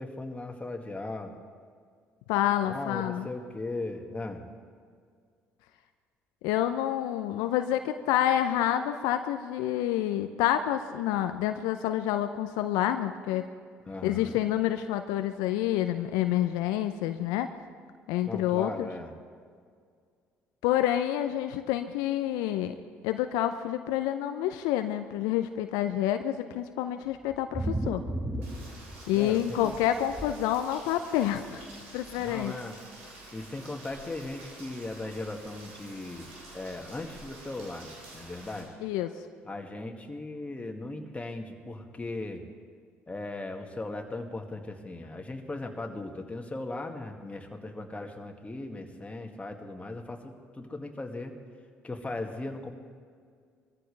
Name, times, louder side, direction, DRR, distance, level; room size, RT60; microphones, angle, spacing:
voice 1, 0.0-1.4 2.6-4.5 13.9-14.4 18.2-19.1 29.1-29.8 32.2-32.8 33.3-38.7 39.5-42.4 43.1-51.3 51.8-52.7, left 2 dB, 20° left, 3 dB, 2.0 m, -38 dB
voice 2, 2.3-3.3 6.4-13.5 14.0-17.5 18.1-18.9 20.6-22.7 23.0-28.0 29.1-31.6 31.9-32.5 38.8-39.1, left 12 dB, 75° left, 8 dB, 0.6 m, -28 dB
sound 1, 27.3-29.3 29.6-30.3 31.3-31.4 31.7-31.8 32.0-32.1, right 1 dB, 5° right, 5.0 m, -33 dB
Rain, 28.4-38.6, right 2 dB, 85° right, 3.6 m, -49 dB
22.0 x 14.5 x 3.4 m, 2.1 s
hypercardioid pair, 55°, 7 cm